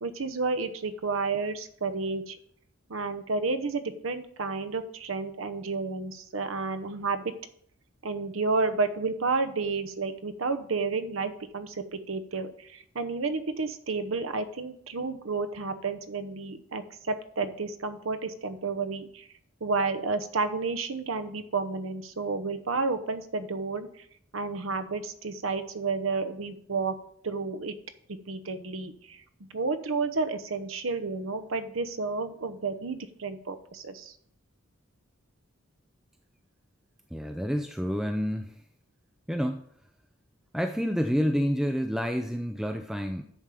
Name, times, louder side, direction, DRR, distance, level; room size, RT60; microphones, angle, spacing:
voice 1, 0.0-2.4 2.9-7.3 8.0-19.3 19.6-24.0 24.3-26.9 27.2-27.8 28.3-29.2 29.5-34.2, right 4 dB, 75° right, 11 dB, 0.9 m, -31 dB
voice 2, 37.1-38.6 39.3-39.6 40.5-43.2, equal, ahead, 6 dB, 0.5 m, -28 dB
10.5 x 7.2 x 4.9 m, 0.67 s
head